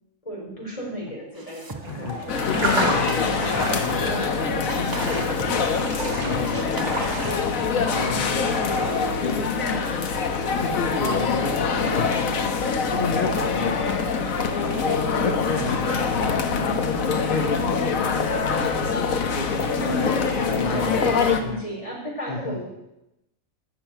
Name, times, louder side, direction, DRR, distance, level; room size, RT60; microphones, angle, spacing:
voice 1, 0.2-3.0 3.9-4.7 11.8-12.1 14.5-16.4 19.6-22.7, right 1 dB, 25° left, -2 dB, 4.3 m, -35 dB
sound 1, 1.3-4.3 4.6-8.2, right 3 dB, 20° right, 0.6 m, -39 dB
voice 2, 1.8-2.2 2.5-5.4 6.1-6.6 7.7-8.3 9.2-12.2 12.9-13.8 14.6-15.8 16.6-21.6 22.3-22.7, left 4 dB, 40° left, 3 dB, 1.2 m, -31 dB
sound 2, 1.8-9.4, right 1 dB, 55° right, 3.8 m, -31 dB
sound 3, 2.3-21.4, left 5 dB, 75° left, 1.5 m, -24 dB
13.0 x 6.6 x 9.0 m, 0.90 s
omnidirectional pair, 1.5 m